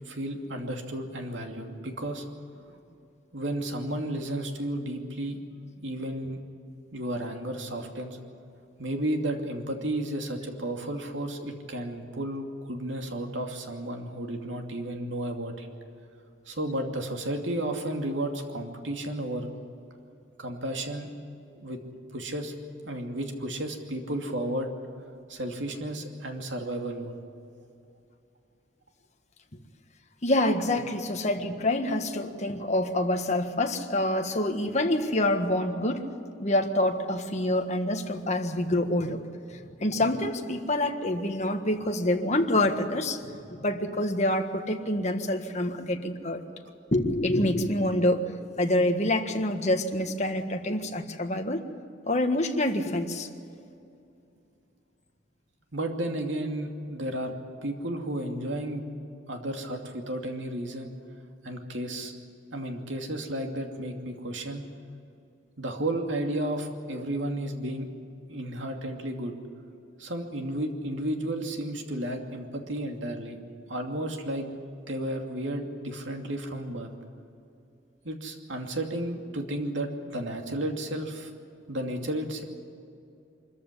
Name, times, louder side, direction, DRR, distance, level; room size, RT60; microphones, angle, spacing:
voice 1, 0.0-2.2 3.3-5.4 5.8-6.4 6.9-8.2 8.8-15.7 16.5-19.5 20.4-21.1 21.5-21.8 22.1-22.5 22.8-24.7 25.3-27.1 55.7-57.3 57.6-58.9 59.3-60.9 61.4-62.1 62.5-64.6 65.6-67.9 68.3-69.3 70.0-73.4 73.7-74.6 74.9-76.9 78.0-81.3 81.7-82.4, right 1 dB, 75° right, 3 dB, 2.6 m, -33 dB
voice 2, 30.2-36.0 36.4-39.2 39.5-43.2 43.5-46.4 46.9-48.2 48.6-51.6 52.1-53.3, left 1 dB, 40° left, 4 dB, 1.6 m, -26 dB
24.5 x 14.5 x 10.0 m, 2.6 s
head